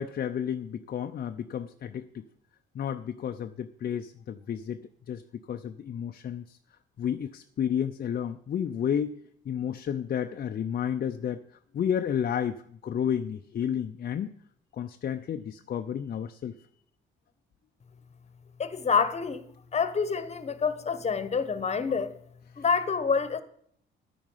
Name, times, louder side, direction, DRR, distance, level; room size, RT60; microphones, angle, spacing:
voice 1, 0.0-2.2 2.7-6.6 7.0-9.2 9.4-11.4 11.7-14.3 14.7-16.5, left 8 dB, 50° left, 0.6 m, -31 dB
voice 2, 18.6-19.5 19.7-22.2 22.6-23.4, left 5 dB, 35° left, 1.1 m, -27 dB
11.0 x 9.0 x 5.6 m
cardioid pair, 90°, 20 cm